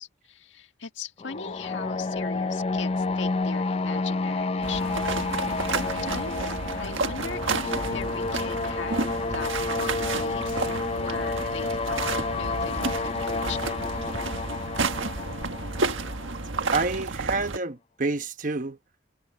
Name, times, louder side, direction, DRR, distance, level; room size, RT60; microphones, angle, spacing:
voice 1, 0.0-10.7 11.0-13.9, left 5 dB, 70° left, 1.6 m, -39 dB
sound 1, 1.2-17.0, left 3 dB, 30° left, 0.4 m, -30 dB
sound 2, 4.3-4.4 5.9-6.0 6.3-6.5 7.2-7.4 7.6-9.7 10.8-14.3, equal, 15° right, 6.6 m, -45 dB
sound 3, 4.6-17.6, right 3 dB, 85° right, 1.4 m, -31 dB
voice 2, 16.7-18.8, right 3 dB, 40° right, 1.0 m, -28 dB
head